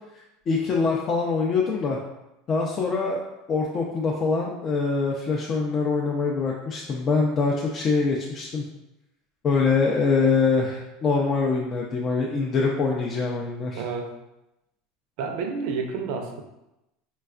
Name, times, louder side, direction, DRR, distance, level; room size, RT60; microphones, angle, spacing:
voice 1, 0.5-2.0 2.5-3.2 3.5-8.6 9.4-13.8, left 4 dB, 40° left, -1 dB, 0.4 m, -24 dB
voice 2, 13.7-14.2 15.2-16.4, right 5 dB, 70° right, 4 dB, 0.5 m, -30 dB
4.2 x 2.3 x 2.3 m, 0.91 s
supercardioid pair, 105°, 0 cm